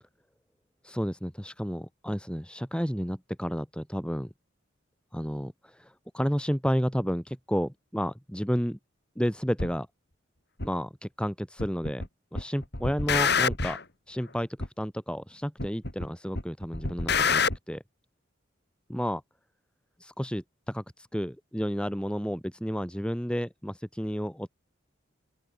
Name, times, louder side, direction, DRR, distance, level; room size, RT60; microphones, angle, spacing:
voice 1, 0.8-4.3 5.1-8.8 9.2-9.9 10.6-12.0 12.3-13.8 14.1-17.8 18.9-19.2 20.0-24.5, equal, 5° left, 7.6 m, -31 dB
sound 1, 9.6-9.7 10.6-10.7 11.6-12.1 12.3-13.8 14.6-14.7 15.6-16.1 16.3-17.6, left 5 dB, 55° left, 5.3 m, -27 dB
open air
head